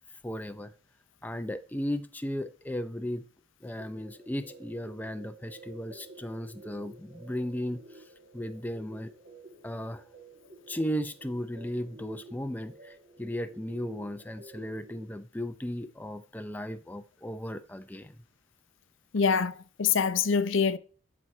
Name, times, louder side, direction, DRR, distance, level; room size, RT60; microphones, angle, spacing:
voice 1, 0.2-0.7 1.2-3.2 3.6-9.1 9.6-10.1 10.7-18.2, equal, 10° left, 0.5 m, -36 dB
sound 1, 3.8-15.1, right 1 dB, 45° right, 1.9 m, -51 dB
voice 2, 19.1-20.8, left 6 dB, 65° left, 0.6 m, -25 dB
12.5 x 6.1 x 4.3 m
head